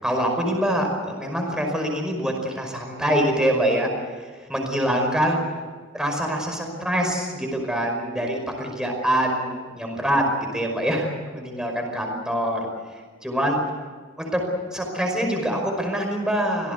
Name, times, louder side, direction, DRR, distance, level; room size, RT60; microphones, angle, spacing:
voice 1, 0.0-3.9 4.2-5.4 5.9-12.7 13.2-13.6 14.2-14.4 14.7-16.7, equal, 5° right, 2 dB, 5.3 m, -25 dB
26.5 x 18.5 x 8.3 m, 1.5 s
head